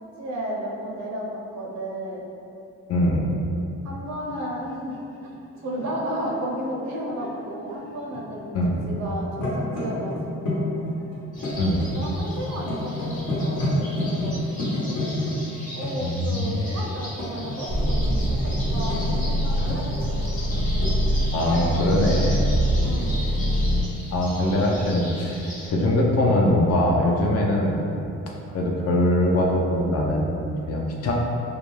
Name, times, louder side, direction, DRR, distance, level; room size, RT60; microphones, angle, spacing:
voice 1, 0.2-2.2 3.8-5.0 5.6-8.5 8.8-10.8 11.9-15.0 15.7-20.2 22.8-23.2, right 1 dB, 65° right, -2 dB, 0.6 m, -33 dB
voice 2, 2.9-3.3 8.5-8.8 11.6-11.8 16.0-16.6 19.6-19.8 21.3-22.6 24.1-25.4 25.7-27.9 28.5-31.1, left 1 dB, 55° left, -1 dB, 0.5 m, -22 dB
sound 1, 4.2-4.4 4.9-7.3 7.7-8.8 9.1-15.9 17.0-18.0 18.4-19.2 20.4-21.9 22.7-22.9, left 2 dB, 75° left, 1.0 m, -30 dB
sound 2, 11.3-25.7, left 1 dB, 25° left, 0.8 m, -39 dB
sound 3, 17.7-23.8, equal, 20° right, 0.4 m, -24 dB
2.4 x 2.2 x 3.1 m, 2.7 s
cardioid pair, 90°, 30 cm